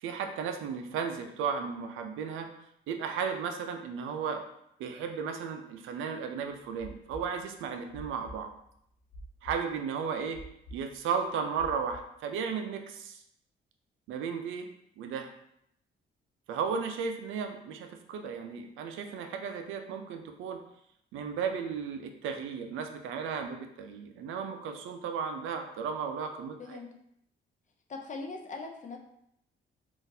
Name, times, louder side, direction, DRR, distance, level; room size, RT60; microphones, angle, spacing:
voice 1, 0.0-2.5 2.9-4.4 4.8-8.5 9.4-10.4 10.7-13.2 14.1-14.7 15.0-15.3 16.5-20.6 21.1-26.8, right 6 dB, 85° right, 5 dB, 0.5 m, -34 dB
sound 1, 6.6-9.8 10.0-11.9, equal, 80° left, 1.0 m, -47 dB
voice 2, 26.6-26.9 27.9-29.0, left 3 dB, 40° left, 3 dB, 0.5 m, -40 dB
3.8 x 2.5 x 2.6 m, 0.75 s
cardioid pair, 90°, 20 cm